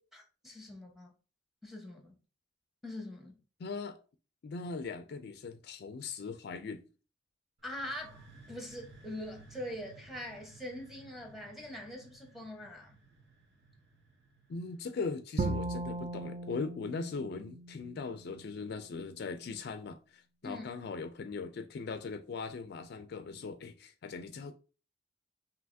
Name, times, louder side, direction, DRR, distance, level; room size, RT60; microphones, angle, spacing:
voice 1, 0.1-1.1 1.6-2.2 2.8-3.4 7.6-13.0 20.4-20.6, left 1 dB, ahead, 1.0 m, -43 dB
voice 2, 3.6-4.0 4.4-6.9 14.5-24.5, left 4 dB, 55° left, 0.4 m, -40 dB
sound 1, 7.6-15.2, right 3 dB, 60° right, 1.1 m, -57 dB
Bowed string instrument, 15.4-18.5, right 2 dB, 35° right, 0.3 m, -37 dB
5.6 x 2.8 x 2.6 m
head